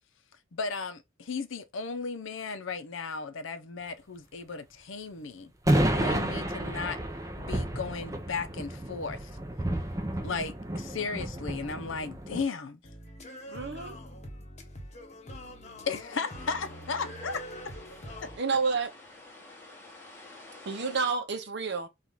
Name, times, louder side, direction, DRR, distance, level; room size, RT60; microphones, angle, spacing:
voice 1, 0.5-5.5 5.9-7.0 7.4-9.3 10.2-12.8 15.9-17.4, left 4 dB, 70° left, 0.6 m, -35 dB
sound 1, 5.7-12.4, right 1 dB, 15° right, 0.6 m, -31 dB
voice 2, 12.8-18.4, left 1 dB, 35° left, 1.3 m, -44 dB
voice 3, 13.5-14.0 18.4-18.9 20.7-21.9, right 4 dB, 55° right, 0.7 m, -29 dB
sound 2, 16.1-21.1, left 2 dB, 10° left, 0.9 m, -50 dB
4.4 x 2.4 x 3.9 m
head